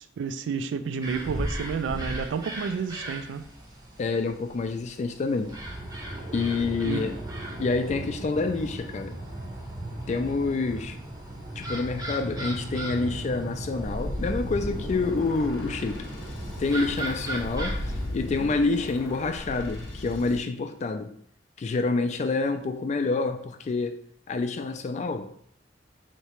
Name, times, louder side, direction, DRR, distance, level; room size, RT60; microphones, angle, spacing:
voice 1, 0.0-3.4 6.8-7.1, right 5 dB, 90° right, 0.3 m, -31 dB
sound 1, 1.0-18.0, right 1 dB, 20° right, 0.7 m, -36 dB
voice 2, 4.0-5.5 6.3-7.2 7.6-9.1 10.1-11.0 11.6-16.0 16.6-21.1 21.6-24.0 24.3-25.3, left 3 dB, 40° left, 0.3 m, -27 dB
sound 2, 13.8-20.4, left 1 dB, 85° left, 0.7 m, -35 dB
3.2 x 2.8 x 3.0 m
head